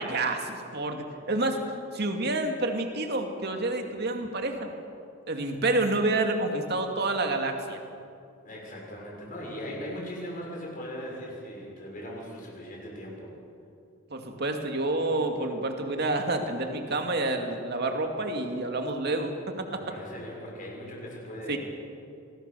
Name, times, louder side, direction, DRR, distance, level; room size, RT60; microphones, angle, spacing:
voice 1, 0.0-1.6 1.9-4.7 5.3-7.8 14.1-19.7 21.5-21.6, right 2 dB, 55° right, 4 dB, 2.4 m, -28 dB
voice 2, 8.4-13.3 19.7-21.6, equal, 40° left, -2 dB, 6.5 m, -39 dB
26.5 x 19.5 x 6.9 m, 2.5 s
head